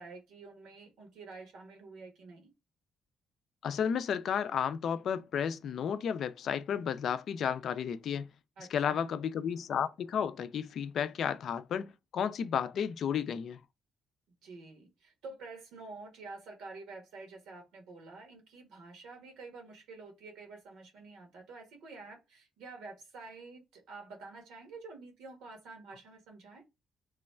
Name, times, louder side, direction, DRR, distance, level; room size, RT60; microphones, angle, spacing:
voice 1, 0.0-2.5 8.6-9.1 14.4-26.6, right 3 dB, 90° right, 1.3 m, -49 dB
voice 2, 3.6-8.3 8.6-13.6, left 8 dB, 65° left, 0.4 m, -33 dB
3.0 x 2.3 x 4.2 m
cardioid pair, 90°, 0 cm